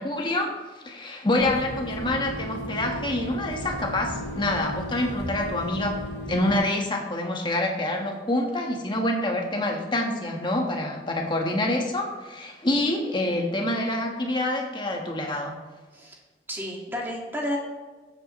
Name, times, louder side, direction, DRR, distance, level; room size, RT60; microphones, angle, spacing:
voice 1, 0.0-6.0 6.3-15.6, left 1 dB, 25° left, 2 dB, 1.4 m, -26 dB
sound 1, 1.4-6.6, equal, 75° left, 1.8 m, -35 dB
voice 2, 16.5-17.6, equal, 10° right, -1 dB, 1.9 m, -31 dB
15.0 x 7.7 x 3.1 m, 1.3 s
head